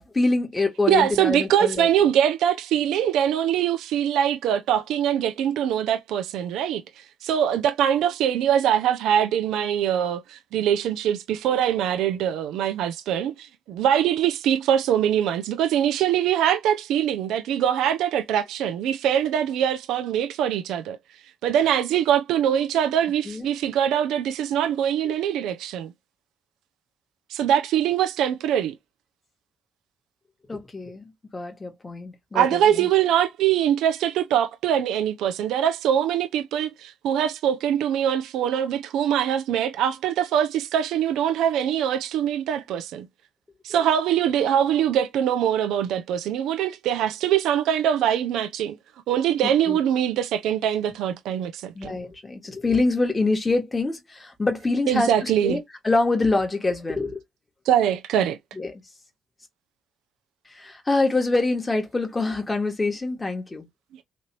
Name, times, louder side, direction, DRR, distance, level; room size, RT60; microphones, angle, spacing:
voice 1, 0.0-1.9 23.3-23.5 30.5-32.9 49.4-49.8 51.7-55.6 55.8-57.2 58.6-58.7 60.5-63.7, left 3 dB, 20° left, 1.9 m, -25 dB
voice 2, 0.9-6.8 7.2-21.0 21.4-25.9 27.3-28.7 32.3-43.1 43.6-48.8 49.1-52.0 54.9-55.6 57.7-58.4, right 10 dB, 85° right, 0.6 m, -23 dB
3.9 x 3.3 x 2.9 m
cardioid pair, 90°, 0 cm